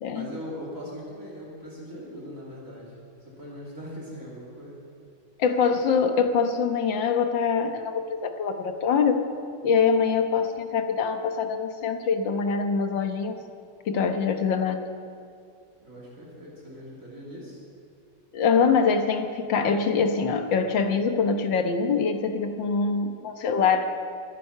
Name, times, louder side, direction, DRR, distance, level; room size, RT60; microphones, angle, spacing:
voice 1, 0.1-2.9 3.2-4.8 15.8-17.6, equal, 45° right, -5 dB, 3.4 m, -40 dB
voice 2, 5.4-9.3 9.6-13.4 13.9-14.8 18.3-23.9, left 5 dB, 85° left, 6 dB, 1.8 m, -24 dB
24.0 x 9.5 x 5.7 m, 2.4 s
omnidirectional pair, 2.0 m